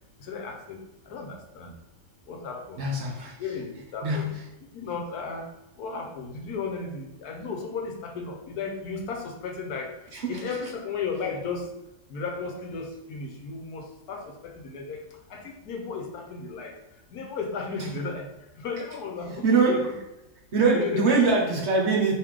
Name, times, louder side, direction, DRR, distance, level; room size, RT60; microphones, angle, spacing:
voice 1, 0.3-0.8 1.1-1.7 2.3-2.8 3.4-4.3 4.7-5.4 5.8-9.9 10.3-11.7 12.1-14.2 14.6-15.0 15.3-16.7 17.1-18.3 18.6-19.9 20.6-21.1, left 4 dB, 80° left, 3 dB, 1.3 m, -34 dB
voice 2, 2.8-3.4 4.0-4.4 10.1-10.4 19.4-19.9 20.5-22.2, right 4 dB, 55° right, -1 dB, 1.0 m, -23 dB
3.5 x 3.1 x 4.9 m, 0.93 s
omnidirectional pair, 1.6 m